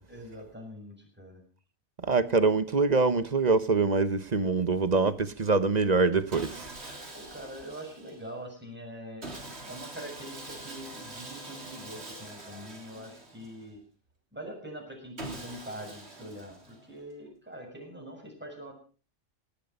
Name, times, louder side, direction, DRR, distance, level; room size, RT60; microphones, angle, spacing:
voice 1, 0.1-1.4 7.1-13.8 14.3-18.7, equal, 10° right, 6.7 m, -44 dB
voice 2, 2.0-6.7, right 4 dB, 40° right, 1.0 m, -24 dB
Sawing, 6.3-8.4 9.2-13.8 15.2-17.0, right 2 dB, 60° right, 3.4 m, -44 dB
18.5 x 12.5 x 5.4 m
omnidirectional pair, 1.3 m